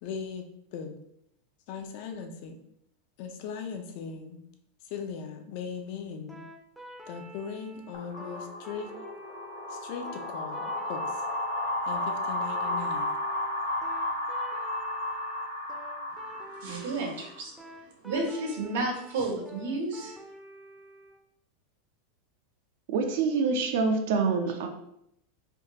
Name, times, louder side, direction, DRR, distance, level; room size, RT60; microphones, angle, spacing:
voice 1, 0.0-1.0 1.7-2.6 3.2-4.4 4.8-6.4 7.1-8.9 9.7-11.2 11.9-13.1, left 6 dB, 50° left, 6 dB, 0.4 m, -39 dB
sound 1, 6.3-21.1, right 1 dB, 5° right, 0.5 m, -49 dB
sound 2, 7.9-17.4, left 1 dB, 65° left, 0.9 m, -33 dB
voice 2, 16.6-17.5 17.8-20.2, right 2 dB, 80° right, 0 dB, 1.0 m, -32 dB
voice 3, 22.9-24.7, right 4 dB, 60° right, 5 dB, 0.4 m, -26 dB
3.4 x 2.3 x 2.8 m, 0.75 s
supercardioid pair, 160°, 0 cm